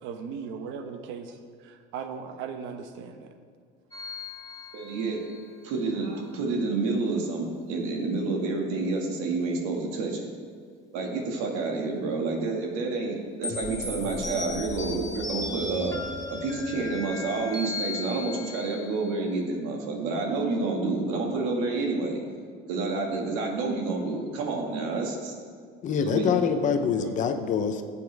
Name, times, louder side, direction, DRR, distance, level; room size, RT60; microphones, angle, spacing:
voice 1, 0.0-3.3, right 6 dB, 65° right, 7 dB, 1.0 m, -38 dB
sound 1, 3.9-5.4 13.4-19.2, left 3 dB, 15° left, 1.1 m, -36 dB
voice 2, 4.7-5.2 5.6-10.3 10.9-16.0 16.3-22.2 22.7-25.4 26.0-26.4 26.8-27.1, right 3 dB, 90° right, 1 dB, 2.1 m, -29 dB
voice 3, 25.8-27.8, left 6 dB, 35° left, 7 dB, 0.8 m, -25 dB
15.5 x 8.4 x 3.5 m, 2.1 s
cardioid pair, 145°, 21 cm